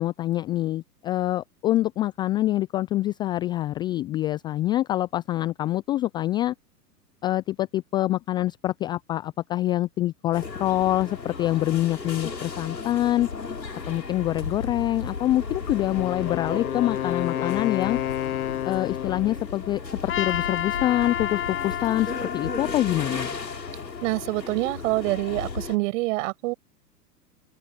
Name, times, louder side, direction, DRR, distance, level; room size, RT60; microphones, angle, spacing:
voice 1, 0.0-6.5 7.2-13.3 13.9-18.0 18.6-23.4, left 14 dB, 10° left, 0.4 m, -25 dB
sound 1, 10.3-25.8, left 4 dB, 85° left, 7.1 m, -35 dB
Wind instrument woodwind instrument, 15.7-19.5, left 12 dB, 60° left, 1.7 m, -30 dB
Trumpet, 20.1-24.4, left 11 dB, 25° left, 7.5 m, -32 dB
voice 2, 24.0-26.5, right 21 dB, 50° right, 7.3 m, -26 dB
open air
figure-of-eight pair, 105°, 48 cm